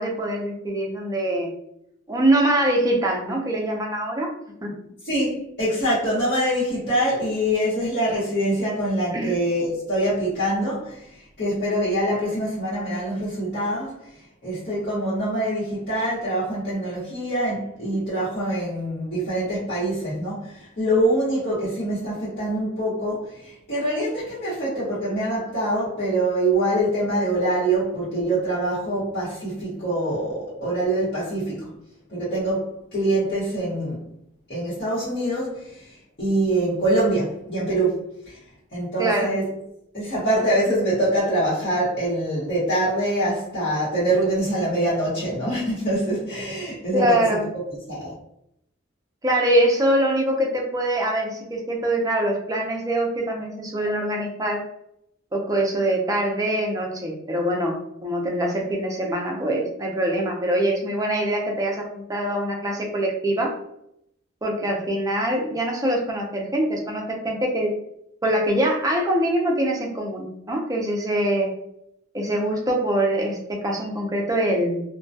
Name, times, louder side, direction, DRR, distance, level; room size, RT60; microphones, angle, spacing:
voice 1, 0.0-1.5 2.1-4.3 4.6-4.7 9.1-9.3 39.0-39.3 46.9-47.4 49.2-54.6 55.3-63.5 64.4-67.7 68.2-71.5 72.1-74.8, right 1 dB, 20° right, 0 dB, 0.5 m, -23 dB
voice 2, 5.0-14.1 14.4-31.7 32.1-34.0 34.5-38.4 38.7-39.4 39.9-47.2 47.9-48.1, right 1 dB, 55° left, -12 dB, 1.0 m, -24 dB
2.2 x 2.2 x 2.6 m, 0.76 s
head